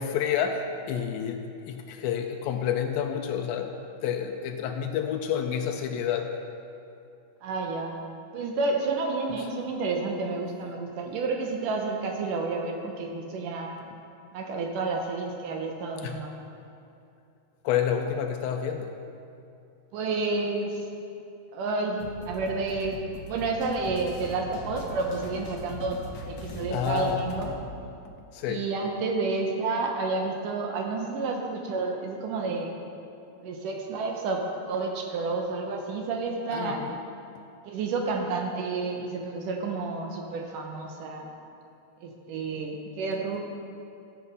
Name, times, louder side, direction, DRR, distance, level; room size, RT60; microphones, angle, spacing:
voice 1, 0.0-3.8 4.0-6.3 16.0-16.3 17.6-19.0 26.7-27.2 28.3-28.6 36.5-37.0, left 8 dB, 85° left, 4 dB, 2.3 m, -29 dB
voice 2, 7.4-8.0 8.3-13.7 14.3-16.4 19.9-20.8 21.5-26.0 26.3-27.6 28.4-32.8 33.4-36.8 37.7-41.3 42.0-43.4, right 3 dB, 75° right, 2 dB, 2.3 m, -30 dB
sound 1, 22.0-27.6, left 1 dB, 65° left, 1.8 m, -40 dB
14.0 x 7.1 x 5.4 m, 2.6 s
omnidirectional pair, 4.1 m